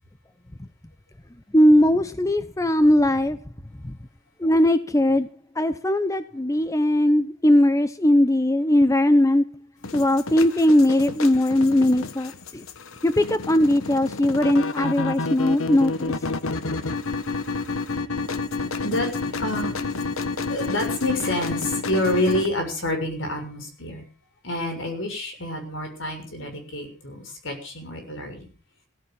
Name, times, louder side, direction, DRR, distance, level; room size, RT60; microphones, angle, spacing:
voice 1, 1.5-3.4 3.8-4.0 4.4-5.3 5.5-9.4 9.9-12.6 13.0-16.1, left 1 dB, 15° left, 11 dB, 0.7 m, -19 dB
sound 1, 9.8-22.5, left 3 dB, 80° left, 1.2 m, -30 dB
voice 2, 19.4-19.9 20.5-24.0 24.4-28.5, left 1 dB, 60° left, 4 dB, 6.7 m, -28 dB
16.0 x 14.5 x 5.6 m, 0.38 s
head